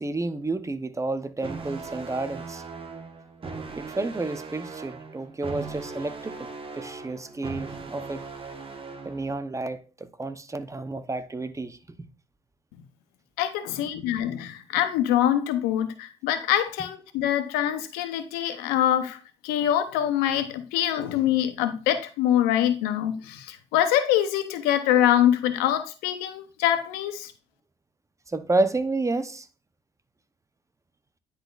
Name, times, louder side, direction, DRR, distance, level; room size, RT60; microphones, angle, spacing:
voice 1, 0.0-2.6 3.8-8.2 9.0-12.1 28.3-29.5, right 2 dB, 20° right, 0.7 m, -30 dB
sound 1, 1.4-9.4, right 4 dB, 35° right, 1.3 m, -39 dB
voice 2, 13.4-27.3, left 11 dB, 85° left, 0.7 m, -24 dB
9.9 x 4.1 x 2.4 m
supercardioid pair, 60°, 16 cm